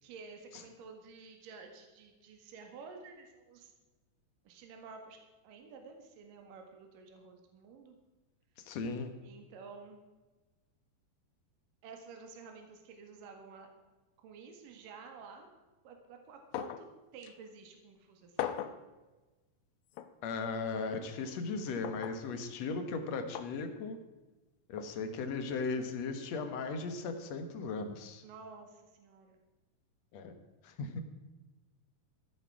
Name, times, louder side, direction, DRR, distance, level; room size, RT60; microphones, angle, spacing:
voice 1, 0.0-3.7 4.4-5.2 5.4-7.9 9.2-10.0 11.8-13.7 14.2-15.5 15.8-16.9 17.1-18.7 28.2-29.4, right 4 dB, 65° right, 4 dB, 3.3 m, -51 dB
voice 2, 8.6-9.1 20.2-24.0 24.7-28.2 30.1-30.3 30.6-31.0, left 4 dB, 60° left, 7 dB, 2.1 m, -37 dB
sound 1, 16.5-16.9 17.2-17.3 18.4-18.8 20.0-20.1 21.8-22.2 23.4-23.5 24.8-24.9, left 11 dB, 80° left, 2.4 m, -38 dB
14.5 x 12.5 x 4.8 m, 1.2 s
omnidirectional pair, 4.3 m